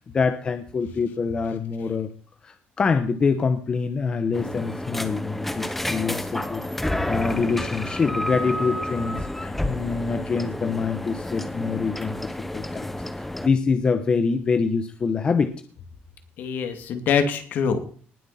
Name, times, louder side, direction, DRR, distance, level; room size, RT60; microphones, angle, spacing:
voice 1, 0.0-2.1 2.4-15.5, left 5 dB, 25° left, 9 dB, 1.0 m, -25 dB
sound 1, 4.3-13.5, left 1 dB, 5° left, 0.9 m, -30 dB
voice 2, 16.4-17.9, left 6 dB, 60° left, 7 dB, 2.7 m, -24 dB
20.0 x 7.8 x 4.3 m, 0.43 s
cardioid pair, 165°, 4 cm